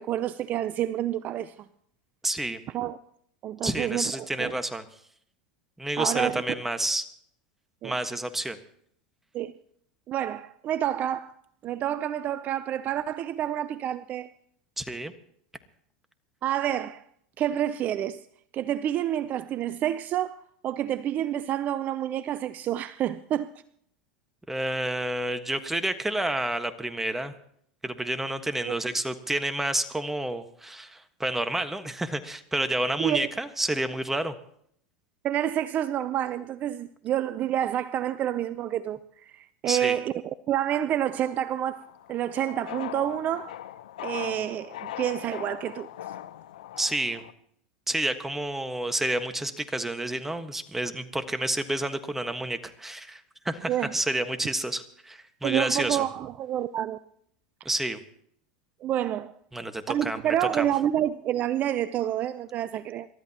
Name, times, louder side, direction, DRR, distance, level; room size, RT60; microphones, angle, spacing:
voice 1, 0.0-1.5 2.7-3.0 3.4-4.6 6.0-6.4 7.8-7.9 9.3-9.5 10.1-11.3 11.6-14.3 16.4-17.0 17.4-18.3 18.5-23.5 28.6-28.8 33.0-33.2 35.2-40.2 40.5-41.8 42.1-43.6 44.0-45.9 53.7-54.0 55.4-57.0 58.8-59.3 59.9-63.1, right 11 dB, 40° right, 0.5 m, -28 dB
voice 2, 2.2-2.6 3.6-4.8 5.8-7.1 7.8-8.6 14.8-15.1 24.5-27.3 27.8-34.3 39.7-40.0 46.8-47.2 47.9-56.1 57.6-58.0 59.5-60.7, right 1 dB, 5° right, 1.4 m, -29 dB
sound 1, 40.8-47.3, left 12 dB, 80° left, 0.8 m, -40 dB
28.0 x 13.0 x 2.9 m
hypercardioid pair, 100°, 4 cm